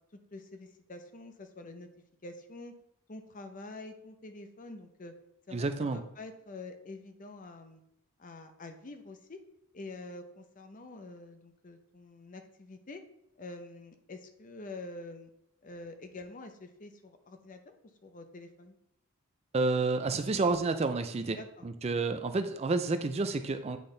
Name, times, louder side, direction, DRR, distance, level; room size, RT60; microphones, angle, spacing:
voice 1, 0.3-1.9 2.2-2.7 3.1-5.1 5.5-7.8 8.2-9.4 9.7-13.0 13.4-15.3 15.6-17.8 18.0-18.7 21.3-21.7, left 2 dB, 35° left, 7 dB, 0.6 m, -46 dB
voice 2, 5.5-6.0 19.5-21.4 21.6-23.8, right 3 dB, 30° right, 9 dB, 0.4 m, -30 dB
8.4 x 3.9 x 3.8 m, 0.82 s
head